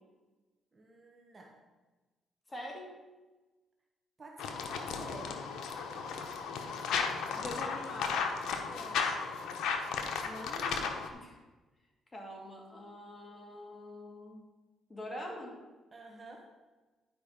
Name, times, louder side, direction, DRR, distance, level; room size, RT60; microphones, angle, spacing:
voice 1, 0.7-1.6 4.2-5.8 8.6-9.1 15.9-16.5, right 2 dB, 30° right, 1 dB, 1.3 m, -51 dB
voice 2, 2.5-2.9 7.4-8.4 10.2-11.4 12.1-14.4 14.9-15.6, left 1 dB, 20° left, 0 dB, 2.4 m, -44 dB
sound 1, 4.4-11.1, left 5 dB, 80° left, 1.0 m, -35 dB
10.5 x 5.2 x 5.3 m, 1.2 s
cardioid pair, 90°, 0 cm